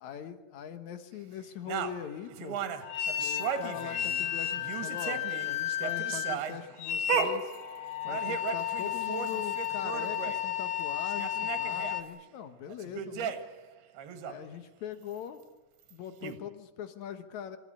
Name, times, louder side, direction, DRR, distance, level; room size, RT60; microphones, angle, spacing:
voice 1, 0.0-2.6 3.2-7.5 8.0-13.3 14.2-15.4 15.9-17.6, left 9 dB, 85° left, 9 dB, 1.6 m, -42 dB
sound 1, 1.7-4.3 4.6-10.4 10.8-10.9 11.1-12.0 12.7-13.6 14.0-14.3 15.9-16.0 16.2-16.4, right 7 dB, 65° right, 3.3 m, -36 dB
sound 2, 2.8-12.0, left 10 dB, 65° left, 3.3 m, -33 dB
27.0 x 15.0 x 9.8 m, 1.0 s
omnidirectional pair, 5.2 m